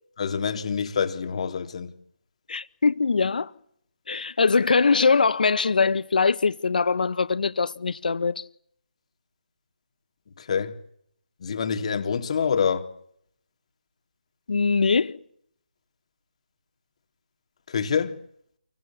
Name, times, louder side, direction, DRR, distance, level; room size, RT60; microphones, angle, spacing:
voice 1, 0.2-1.9 10.4-10.8 11.4-12.9 17.7-18.2, left 6 dB, 40° left, 3.5 m, -26 dB
voice 2, 2.5-3.5 4.1-8.4 14.5-15.2, left 4 dB, 60° left, 1.7 m, -22 dB
29.0 x 23.5 x 7.4 m
figure-of-eight pair, 165°, 5 cm